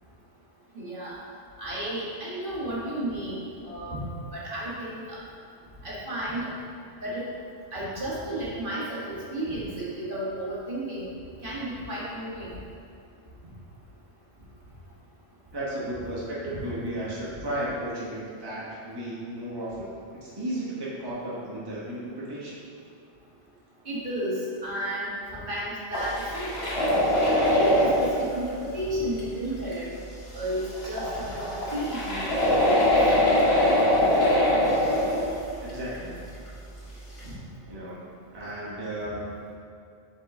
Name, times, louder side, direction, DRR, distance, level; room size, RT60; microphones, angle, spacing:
voice 1, 0.7-1.2 1.6-4.0 4.3-5.0 5.8-6.5 7.0-7.3 7.7-11.1 11.4-12.5 16.5-16.6 23.9-26.5 27.5-29.9 30.3-32.8 37.2-37.3, right 1 dB, 50° right, -8 dB, 1.7 m, -32 dB
voice 2, 15.5-19.8 20.2-22.6 35.6-36.2 37.7-38.0 38.3-39.3, right 1 dB, 20° right, -8 dB, 1.1 m, -34 dB
sound 1, 25.9-28.3 29.2-29.3 29.7-29.8 30.4-30.5 30.6-35.4 35.7-36.0 36.5-36.6 37.2-37.3, left 1 dB, 65° left, 1.8 m, -22 dB
7.5 x 4.6 x 3.7 m, 2.5 s
omnidirectional pair, 1.1 m